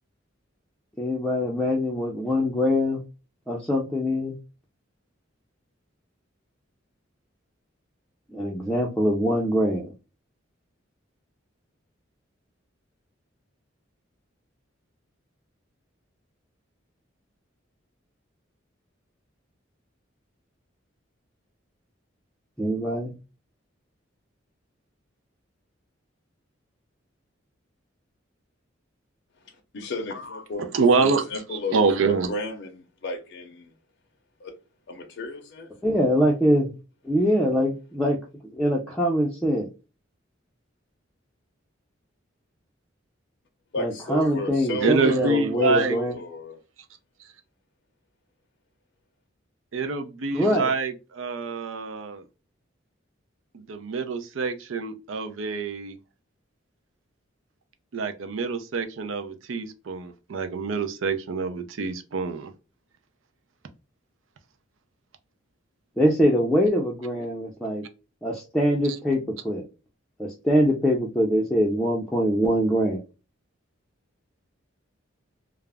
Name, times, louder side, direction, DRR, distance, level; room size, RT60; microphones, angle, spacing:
voice 1, 1.0-3.0 3.5-4.3 8.3-9.9 22.6-23.1 35.8-36.7 37.0-39.7 43.8-46.1 50.3-50.7 66.0-67.8 68.2-69.6 70.2-73.0, equal, 5° left, 0.4 m, -23 dB
voice 2, 29.7-30.7 31.3-31.8 32.3-33.7 34.4-34.6 34.9-35.7 43.7-46.6, left 1 dB, 60° left, 0.5 m, -33 dB
voice 3, 30.7-32.3 44.8-46.0 47.2-47.3 49.7-52.2 53.5-56.0 57.9-62.5 68.9-69.0, right 4 dB, 75° right, 0.5 m, -26 dB
2.4 x 2.0 x 3.2 m
head